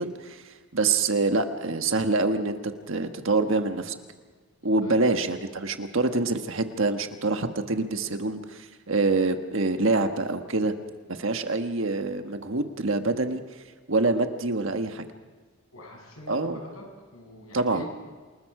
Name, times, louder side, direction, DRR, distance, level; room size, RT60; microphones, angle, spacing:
voice 1, 0.0-4.0 4.6-10.7 11.1-13.4 13.9-15.0 16.3-16.6 17.5-17.9, right 3 dB, 65° right, 6 dB, 1.5 m, -26 dB
voice 2, 4.6-4.9 15.7-16.8 17.1-17.9, left 1 dB, 80° left, 0 dB, 8.0 m, -44 dB
28.0 x 20.5 x 4.9 m, 1.5 s
head